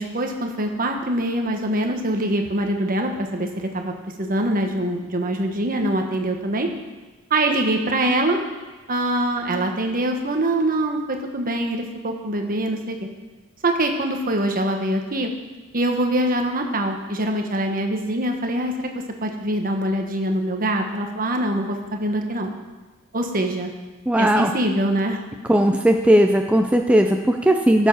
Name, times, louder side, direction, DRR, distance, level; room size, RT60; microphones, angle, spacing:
voice 1, 0.0-6.7 7.3-8.4 8.9-13.0 13.6-15.3 15.7-18.7 19.2-22.5 23.1-23.7 24.2-25.2, right 1 dB, 40° right, 3 dB, 1.4 m, -24 dB
voice 2, 24.1-24.5 25.5-27.9, right 1 dB, 5° right, 4 dB, 0.4 m, -17 dB
15.5 x 7.3 x 5.7 m, 1.2 s
head